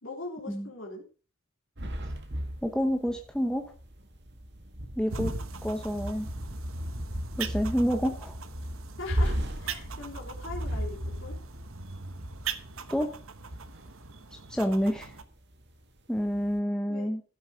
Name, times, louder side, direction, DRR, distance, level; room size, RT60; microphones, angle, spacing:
voice 1, 0.0-1.0 9.0-11.4 16.9-17.1, left 2 dB, 60° left, -1 dB, 3.4 m, -40 dB
sound 1, 1.8-14.2 14.5-14.7 15.1-15.8 16.2-16.6, equal, 50° right, 1.8 m, -36 dB
voice 2, 2.6-3.7 5.0-5.3 5.6-6.3 7.4-8.3 12.9-13.1 14.5-15.1 16.1-17.2, equal, 5° left, 3 dB, 1.0 m, -28 dB
sound 2, 5.1-15.2, right 5 dB, 70° right, 1.1 m, -41 dB
15.0 x 7.2 x 5.0 m, 0.36 s
head